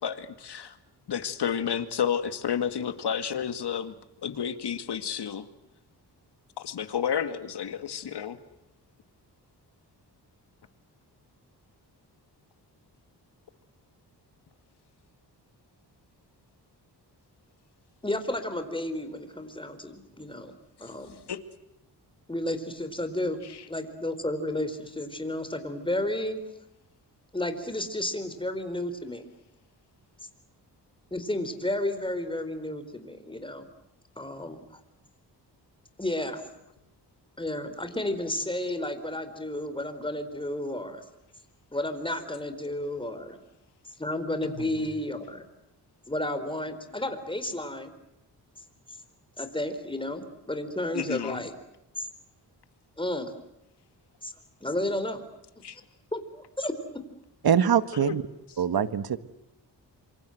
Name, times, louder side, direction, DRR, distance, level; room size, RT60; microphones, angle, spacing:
voice 1, 0.0-0.8 1.1-4.0 4.2-5.5 6.6-8.4 21.3-21.4 23.4-23.6 44.4-44.9 50.9-51.5 55.6-55.8 57.9-58.2, left 8 dB, 75° left, 10 dB, 2.2 m, -31 dB
voice 2, 18.0-20.5 20.8-21.2 22.3-23.4 23.7-26.4 27.3-29.3 31.1-33.7 34.2-34.6 36.0-36.4 37.4-41.0 41.7-43.4 44.0-45.5 46.1-47.9 49.4-51.6 52.0-52.1 53.0-53.3 54.2-54.3 54.6-55.2 56.1-57.0, left 1 dB, 10° left, 9 dB, 4.4 m, -32 dB
voice 3, 57.4-58.2 58.6-59.2, right 8 dB, 60° right, 13 dB, 1.5 m, -23 dB
27.0 x 25.0 x 8.0 m, 0.89 s
cardioid pair, 80°, 41 cm